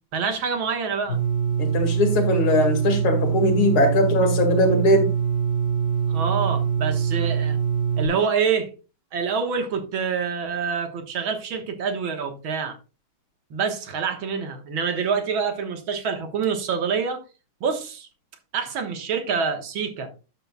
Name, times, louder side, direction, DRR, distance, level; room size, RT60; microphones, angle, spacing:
voice 1, 0.1-1.2 6.1-7.6 8.0-8.7 9.1-12.8 13.5-17.2 17.6-18.1 18.5-20.1, right 6 dB, 75° right, 2.1 m, -26 dB
sound 1, 1.1-8.1, right 7 dB, 40° left, 3.3 m, -23 dB
voice 2, 1.6-5.1, left 1 dB, 85° left, 3.0 m, -20 dB
12.0 x 7.7 x 2.3 m
omnidirectional pair, 2.3 m